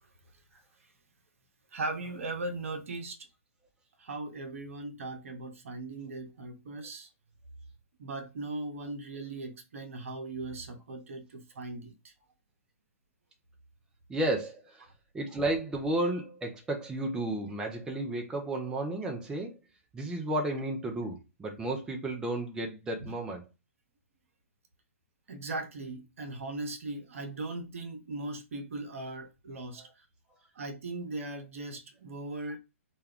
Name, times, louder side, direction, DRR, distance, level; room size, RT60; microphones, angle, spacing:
voice 1, 1.7-3.2 4.0-7.1 8.0-11.9 23.0-23.1 25.3-29.8 30.6-32.6, right 2 dB, 60° right, 0.7 m, -38 dB
voice 2, 14.1-14.9 15.1-19.6 19.9-23.4 29.8-29.9, right 1 dB, 10° right, 0.5 m, -33 dB
2.3 x 2.1 x 3.5 m
figure-of-eight pair, 120°, 8 cm